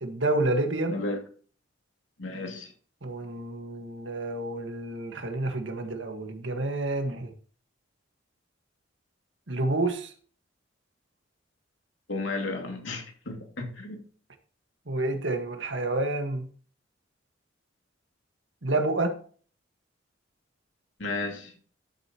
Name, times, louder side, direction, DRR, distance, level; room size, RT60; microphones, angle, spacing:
voice 1, 0.0-1.0 3.0-7.3 9.5-10.1 14.9-16.5 18.6-19.2, right 2 dB, 75° right, 5 dB, 1.8 m, -29 dB
voice 2, 0.9-1.2 2.2-2.7 12.1-14.0 21.0-21.5, left 2 dB, 85° left, 2 dB, 2.7 m, -33 dB
13.0 x 7.9 x 3.1 m, 0.43 s
head